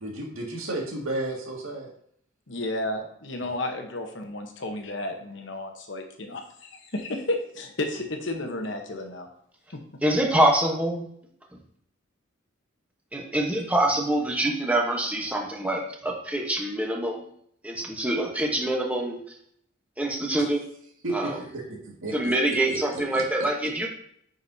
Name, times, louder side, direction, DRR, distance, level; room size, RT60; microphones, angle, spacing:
voice 1, 0.0-1.9 21.0-21.2 21.5-21.6 22.0-22.3 22.7-23.2, right 2 dB, 80° right, -2 dB, 2.1 m, -32 dB
voice 2, 2.5-9.3 9.7-9.8, left 1 dB, 60° left, 4 dB, 1.1 m, -32 dB
voice 3, 10.0-11.1 13.1-17.2 17.6-19.2 20.0-20.6 21.1-21.4 22.1-23.9, right 1 dB, 5° right, 0 dB, 1.0 m, -25 dB
9.6 x 5.2 x 2.8 m, 0.68 s
head